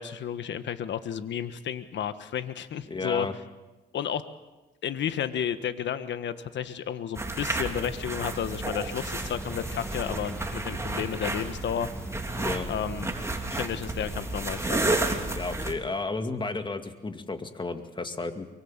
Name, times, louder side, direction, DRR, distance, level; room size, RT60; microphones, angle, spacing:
voice 1, 0.0-3.3 3.9-4.2 4.8-11.9 12.7-13.1 13.5-15.0, left 9 dB, 65° left, 11 dB, 1.4 m, -32 dB
voice 2, 2.9-3.3 12.3-12.7 15.4-18.5, left 3 dB, 25° left, 7 dB, 2.2 m, -33 dB
sound 1, 7.1-15.7, right 2 dB, 15° right, 3.3 m, -32 dB
Accelerating revving vroom, 9.0-15.9, left 1 dB, 5° left, 1.5 m, -43 dB
23.5 x 23.5 x 7.4 m, 1.1 s
cardioid pair, 90°, 20 cm